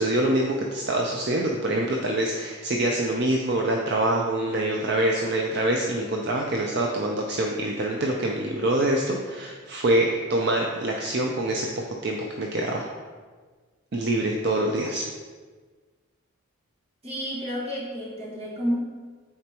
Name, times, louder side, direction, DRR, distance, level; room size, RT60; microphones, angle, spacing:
voice 1, 0.0-11.7 12.0-12.9 13.9-15.0, right 1 dB, 50° right, 0 dB, 0.5 m, -25 dB
voice 2, 17.0-18.8, equal, 30° right, -6 dB, 1.6 m, -30 dB
9.4 x 4.3 x 2.9 m, 1.5 s
head